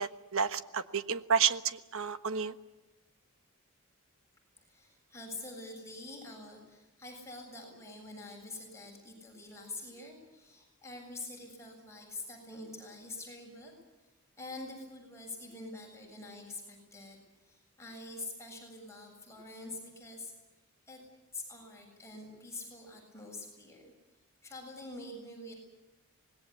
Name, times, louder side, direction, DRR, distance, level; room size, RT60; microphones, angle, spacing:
voice 1, 0.0-2.5, right 6 dB, 65° right, 12 dB, 1.3 m, -31 dB
voice 2, 4.6-13.7 14.4-20.3 20.9-21.0 21.3-23.9 24.4-25.5, left 2 dB, 15° left, 0 dB, 7.6 m, -46 dB
25.5 x 20.5 x 8.4 m, 1.1 s
head